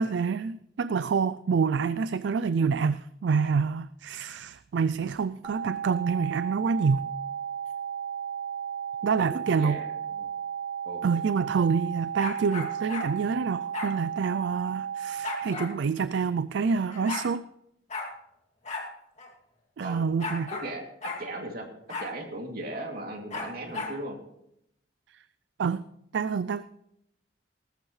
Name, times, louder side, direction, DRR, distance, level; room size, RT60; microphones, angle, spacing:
voice 1, 0.0-7.0 9.0-9.8 11.0-17.4 19.8-20.5 25.6-25.9 26.1-26.6, right 5 dB, 70° right, 15 dB, 0.4 m, -27 dB
sound 1, 5.4-15.4, right 8 dB, 25° right, 4.5 m, -34 dB
voice 2, 9.5-9.9 10.2-10.3 10.8-11.3 19.8-20.3 20.6-20.8 21.2-21.7 22.0-24.2, right 1 dB, 55° right, 2 dB, 2.7 m, -37 dB
sound 2, 12.2-13.1 13.7-13.9 15.2-15.7 16.6-16.7 16.9-17.3 17.9-18.1 18.6-18.9 19.2-19.3 20.2-20.7 21.0-21.2 21.9-22.1 23.3-24.0, left 3 dB, 40° left, 2.6 m, -35 dB
19.0 x 13.5 x 3.2 m, 0.78 s
head